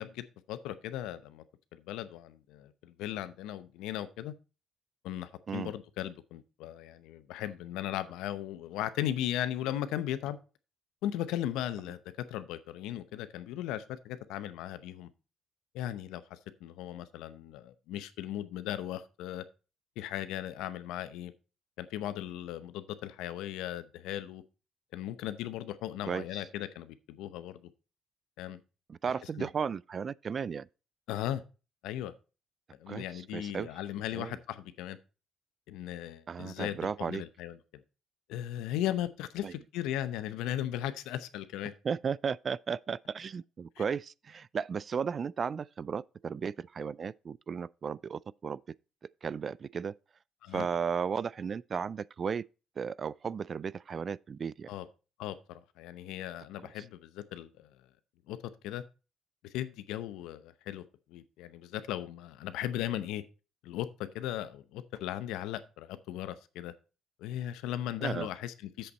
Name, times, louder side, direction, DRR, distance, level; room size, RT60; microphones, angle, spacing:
voice 1, 0.0-1.4 1.7-4.3 5.0-10.4 11.0-15.1 15.7-19.4 20.0-21.3 21.8-24.4 24.9-27.6 28.4-28.6 29.4-29.5 31.1-31.4 31.8-32.1 32.8-35.0 35.7-37.6 38.3-41.7 43.8-43.9 50.4-50.7 54.7-54.9 55.2-57.7 58.3-58.4 58.6-58.8 59.4-60.8 61.1-63.2 63.6-63.9 64.1-66.7 67.2-68.9, left 12 dB, 80° left, 0.7 m, -37 dB
voice 2, 28.9-30.7 32.9-33.0 33.3-33.7 34.2-34.3 36.3-37.2 39.4-39.5 41.8-48.6 49.2-49.9 50.5-52.4 52.8-54.7 68.0-68.3, right 6 dB, 50° right, 0.3 m, -35 dB
7.9 x 6.8 x 4.2 m
supercardioid pair, 55°, 0 cm